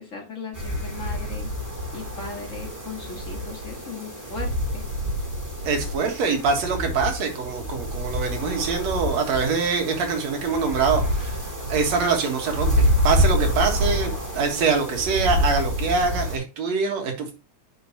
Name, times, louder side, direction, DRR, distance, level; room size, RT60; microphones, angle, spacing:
voice 1, 0.0-1.5 1.9-4.9, left 4 dB, 35° left, 1 dB, 1.5 m, -37 dB
sound 1, 0.5-16.4, left 1 dB, 5° right, 2.6 m, -27 dB
voice 2, 5.6-11.4 11.7-17.3, right 5 dB, 65° right, 3 dB, 2.7 m, -24 dB
9.8 x 5.3 x 2.9 m, 0.30 s
omnidirectional pair, 3.3 m